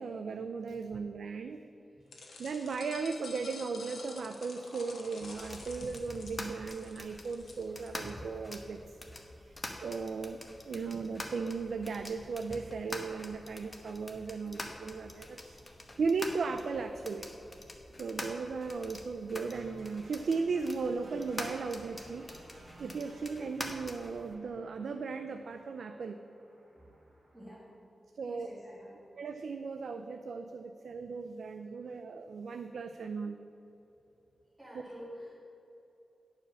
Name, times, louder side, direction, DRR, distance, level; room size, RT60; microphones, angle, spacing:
voice 1, 0.0-1.6 2.4-9.0 9.4-10.4 10.6-15.6 16.0-17.3 17.9-22.2 22.8-26.2 28.2-28.5 29.2-33.4, right 4 dB, 85° right, 6 dB, 0.4 m, -36 dB
sound 1, 2.1-8.1, left 3 dB, 80° left, 1.2 m, -49 dB
sound 2, 5.2-24.3, left 1 dB, 25° left, 1.0 m, -46 dB
sound 3, 19.5-27.5, right 2 dB, 65° right, 1.8 m, -57 dB
voice 2, 27.3-27.7 28.2-29.0 34.6-35.3, equal, 10° right, -7 dB, 1.8 m, -48 dB
10.5 x 4.9 x 6.9 m, 2.9 s
wide cardioid pair, 110°, 0 cm